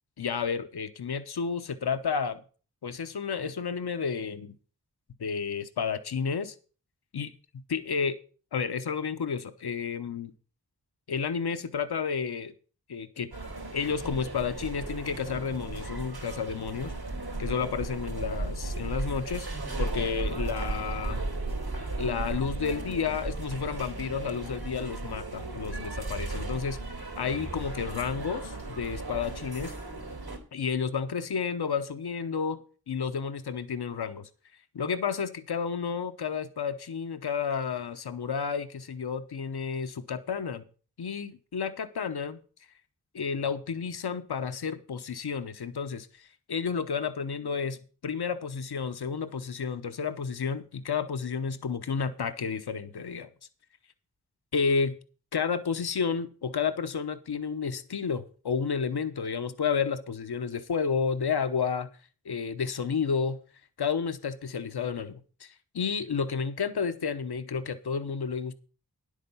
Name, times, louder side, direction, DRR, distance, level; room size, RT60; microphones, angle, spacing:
voice 1, 0.2-2.4 2.8-4.5 5.2-6.5 7.1-7.3 7.7-8.2 8.5-10.3 11.1-12.5 12.9-13.3 13.7-16.9 17.4-19.5 19.8-21.2 22.0-26.8 27.2-29.7 30.5-32.6 32.9-34.3 34.7-40.6 41.0-42.4 43.1-53.3 54.5-54.9 55.3-61.9 62.2-63.4 63.8-68.5, left 6 dB, 80° left, 0.9 m, -31 dB
sound 1, 13.3-30.4, right 2 dB, 80° right, 3.5 m, -35 dB
10.5 x 8.4 x 5.5 m
wide cardioid pair, 55°, 38 cm